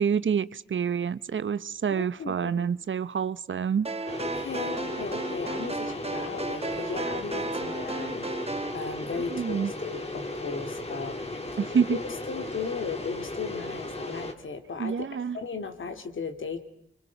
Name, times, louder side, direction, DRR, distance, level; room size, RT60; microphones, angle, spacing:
voice 1, 0.0-3.9 9.3-9.7 11.6-12.0 14.8-15.4, right 7 dB, 80° right, 16 dB, 1.0 m, -27 dB
voice 2, 1.9-2.7 4.2-11.2 11.9-15.1 15.3-16.6, left 5 dB, 85° left, 7 dB, 2.9 m, -36 dB
sound 1, 3.8-8.8, right 3 dB, 30° right, 1.5 m, -34 dB
sound 2, 4.1-14.3, left 2 dB, 30° left, 3.3 m, -36 dB
29.0 x 25.5 x 5.9 m, 0.73 s
wide cardioid pair, 90°, 20 cm